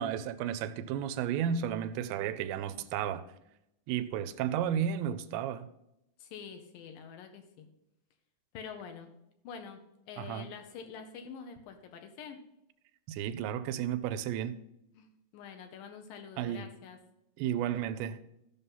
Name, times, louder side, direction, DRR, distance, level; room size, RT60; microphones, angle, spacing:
voice 1, 0.0-3.2 3.9-5.7 10.2-10.5 13.1-14.6 16.4-16.7 17.4-18.2, right 9 dB, 85° right, 2.9 m, -33 dB
voice 2, 6.2-7.7 8.5-9.1 9.4-9.8 10.1-12.4 14.9-17.0, left 6 dB, 75° left, 2.2 m, -46 dB
14.0 x 5.6 x 5.6 m
omnidirectional pair, 5.0 m